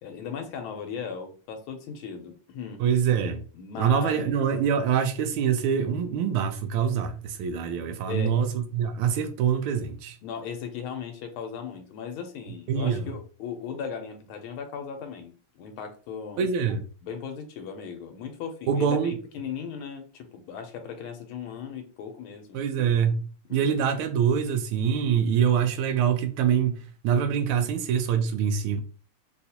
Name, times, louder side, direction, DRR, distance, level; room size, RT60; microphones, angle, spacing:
voice 1, 0.0-2.8 3.5-4.4 8.1-8.5 10.2-15.3 15.6-16.5 17.0-22.7 23.5-23.7, left 6 dB, 80° left, 1.5 m, -37 dB
voice 2, 2.8-3.4 3.8-10.2 12.7-13.1 16.4-16.8 18.7-19.2 22.5-28.8, right 7 dB, 85° right, 1.5 m, -25 dB
4.0 x 2.3 x 2.7 m
omnidirectional pair, 2.3 m